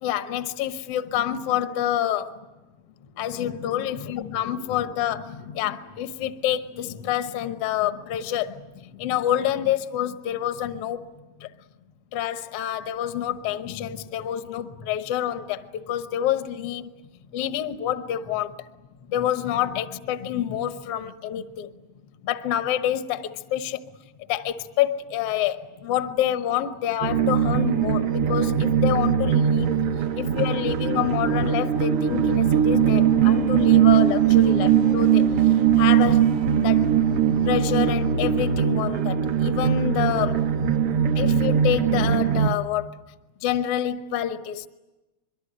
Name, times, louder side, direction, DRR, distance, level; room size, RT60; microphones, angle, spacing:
voice 1, 0.0-2.5 3.2-11.1 11.4-11.5 12.1-16.9 17.3-18.7 19.1-21.7 22.2-23.9 24.3-29.7 30.2-34.7 34.9-35.3 35.8-36.3 36.6-37.0 37.4-40.5 41.1-43.0 43.4-44.7, left 11 dB, 60° left, 1.6 m, -27 dB
sound 1, 27.0-42.5, right 8 dB, 65° right, 1.4 m, -20 dB
23.5 x 23.0 x 10.0 m
omnidirectional pair, 3.7 m